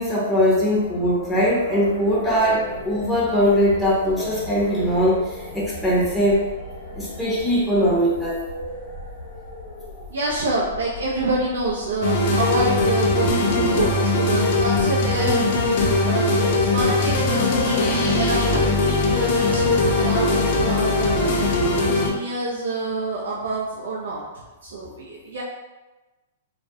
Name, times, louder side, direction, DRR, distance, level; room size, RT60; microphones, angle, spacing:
voice 1, 0.0-6.4 7.0-8.4, equal, 5° left, -7 dB, 0.6 m, -21 dB
sound 1, 0.7-14.8, left 1 dB, 85° left, 0.8 m, -38 dB
voice 2, 10.1-15.5 16.0-21.3 21.7-25.4, right 2 dB, 85° right, -5 dB, 0.4 m, -27 dB
sound 2, 12.0-22.1, left 2 dB, 55° left, 0.5 m, -20 dB
2.3 x 2.0 x 2.6 m, 1.1 s
hypercardioid pair, 135°, 0 cm